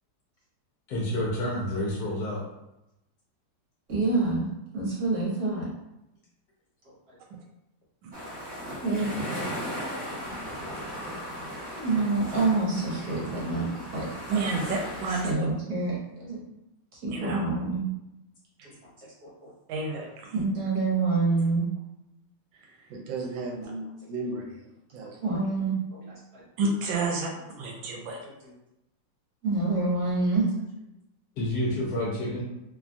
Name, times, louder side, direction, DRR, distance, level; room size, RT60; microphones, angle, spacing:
voice 1, 0.9-2.4 31.4-32.4, left 1 dB, 70° left, -3 dB, 1.0 m, -29 dB
voice 2, 3.9-4.5 4.7-5.7 8.8-9.1 10.1-10.2 10.7-11.0 11.7-14.1 15.2-16.4 17.0-17.9 19.2-19.3 20.3-21.6 23.6-23.7 25.0-25.8 26.3-26.4 29.4-30.5, right 3 dB, 60° right, -6 dB, 1.3 m, -27 dB
sound 1, 8.1-15.3, equal, 45° right, 1.1 m, -36 dB
voice 3, 14.3-15.5 17.1-17.4 18.6-18.7 19.7-20.3 22.9-23.8 24.1-24.6 24.9-25.1 26.6-28.2, right 3 dB, 80° right, 1 dB, 1.3 m, -31 dB
3.1 x 2.2 x 2.5 m, 0.91 s
omnidirectional pair, 2.1 m